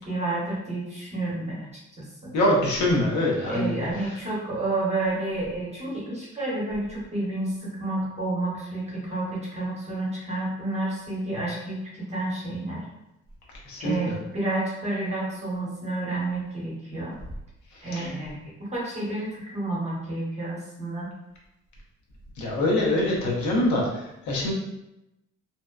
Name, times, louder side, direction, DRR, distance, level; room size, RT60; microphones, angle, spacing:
voice 1, 0.0-1.6 2.2-2.3 3.4-12.8 13.8-17.2 17.8-21.1, right 2 dB, 20° right, -5 dB, 0.9 m, -30 dB
voice 2, 2.3-3.7 13.7-13.9 17.9-18.1 22.4-24.5, left 1 dB, 70° left, -3 dB, 0.8 m, -24 dB
2.6 x 2.1 x 2.3 m, 0.90 s
cardioid pair, 90°, 30 cm